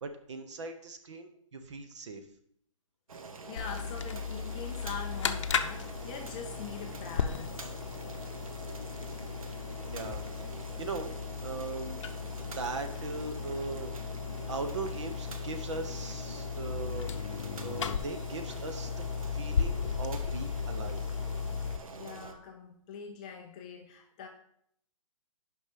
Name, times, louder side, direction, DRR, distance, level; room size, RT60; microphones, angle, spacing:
voice 1, 0.0-2.2 9.9-10.2 10.8-11.1 11.4-12.0 12.5-13.9 14.5-17.1 17.6-19.0 19.3-21.0, right 3 dB, 60° right, 7 dB, 1.1 m, -39 dB
Boiling, 3.1-22.3, right 4 dB, 85° right, 1.2 m, -46 dB
voice 2, 3.5-7.6 13.5-13.7 21.9-24.3, left 6 dB, 15° left, 1 dB, 0.4 m, -43 dB
sound 1, 3.6-21.8, left 6 dB, 60° left, 0.7 m, -36 dB
6.1 x 5.4 x 5.9 m, 0.69 s
hypercardioid pair, 165°, 17 cm